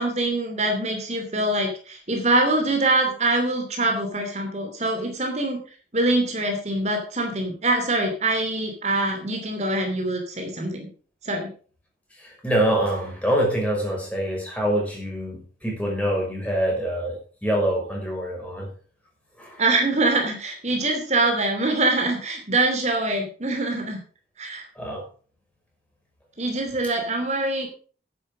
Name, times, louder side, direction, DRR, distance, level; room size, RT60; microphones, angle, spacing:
voice 1, 0.0-5.6 5.9-10.9 11.2-11.5 19.6-24.0 24.4-24.7 26.4-27.7, right 2 dB, 35° right, 3 dB, 2.8 m, -24 dB
voice 2, 12.2-17.2 17.4-18.7 19.4-19.6 24.8-25.0, right 1 dB, 5° left, -1 dB, 5.8 m, -25 dB
11.0 x 9.2 x 6.2 m, 0.41 s
head